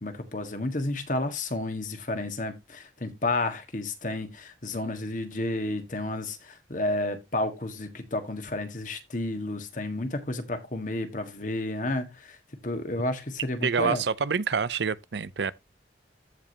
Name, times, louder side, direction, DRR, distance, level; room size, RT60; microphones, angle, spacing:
voice 1, 0.0-12.4 12.6-14.0, left 2 dB, 45° left, 1.6 m, -31 dB
voice 2, 13.6-15.5, right 5 dB, 70° right, 0.6 m, -27 dB
14.5 x 5.1 x 2.8 m
head